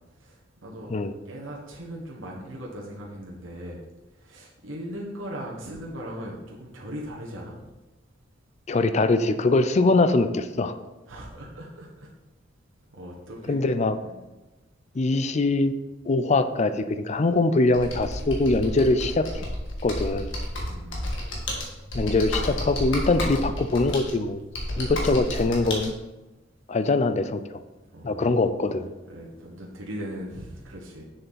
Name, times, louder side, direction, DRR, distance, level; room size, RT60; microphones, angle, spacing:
voice 1, 0.2-0.9 1.2-3.8 4.2-7.6 11.1-12.1 12.9-13.6 14.0-14.2 20.7-21.1 24.7-24.9 27.9-28.3 29.1-31.0, equal, 80° right, -3 dB, 1.4 m, -39 dB
voice 2, 8.7-10.8 13.5-14.0 15.0-15.7 16.0-19.4 19.8-20.4 21.9-24.4 24.8-25.9 26.7-27.4 28.0-28.9, left 2 dB, 35° left, 11 dB, 0.4 m, -23 dB
Computer keyboard, 17.7-25.9, left 1 dB, 70° left, 1.7 m, -31 dB
7.1 x 6.5 x 4.1 m, 1.1 s
head